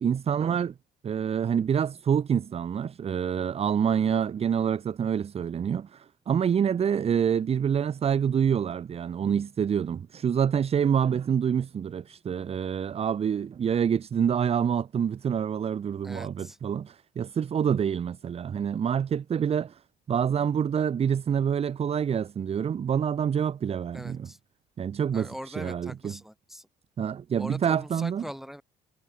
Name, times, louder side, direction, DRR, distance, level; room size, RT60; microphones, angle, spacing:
voice 1, 0.0-0.7 1.0-19.8 20.1-24.3 24.8-26.2 27.0-28.2, right 8 dB, 35° right, 0.9 m, -27 dB
voice 2, 16.0-16.6 23.9-24.4 25.1-26.7 27.4-28.6, equal, ahead, 1.7 m, -41 dB
cardioid pair, 110°, 17 cm